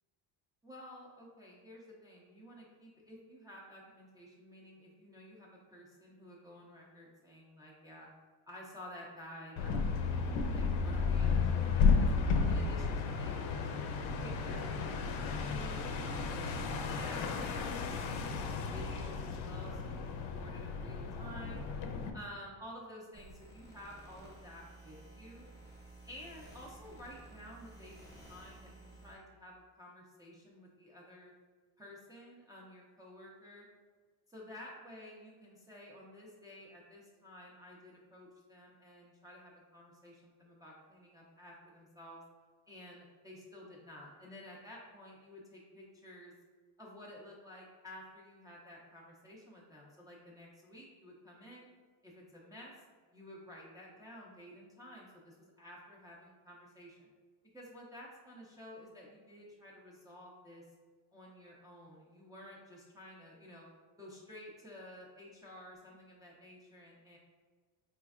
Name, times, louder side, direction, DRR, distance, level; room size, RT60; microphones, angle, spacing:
voice 1, 0.6-8.1 8.5-12.1 12.4-13.8 14.2-18.2 18.5-21.6 22.1-25.5 26.1-31.3 31.8-33.7 34.3-42.2 42.7-46.3 46.8-51.7 52.0-52.7 53.1-57.1 57.5-60.7 61.1-63.7 64.0-67.2, equal, 10° right, -5 dB, 0.3 m, -52 dB
sound 1, 9.6-22.1, left 5 dB, 80° left, 0.6 m, -33 dB
sound 2, 23.1-29.2, right 1 dB, 5° left, 0.8 m, -54 dB
4.2 x 3.0 x 2.4 m, 1.5 s
cardioid pair, 150°, 46 cm